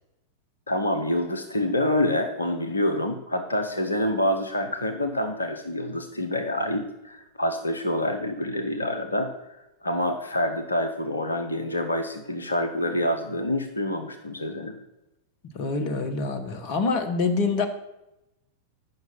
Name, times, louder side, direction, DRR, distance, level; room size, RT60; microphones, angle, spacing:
voice 1, 0.7-14.8, left 1 dB, 75° left, 5 dB, 0.8 m, -27 dB
voice 2, 15.5-17.7, left 4 dB, 45° left, 8 dB, 1.1 m, -26 dB
9.1 x 6.0 x 5.7 m, 0.90 s
figure-of-eight pair, 90°, 0 cm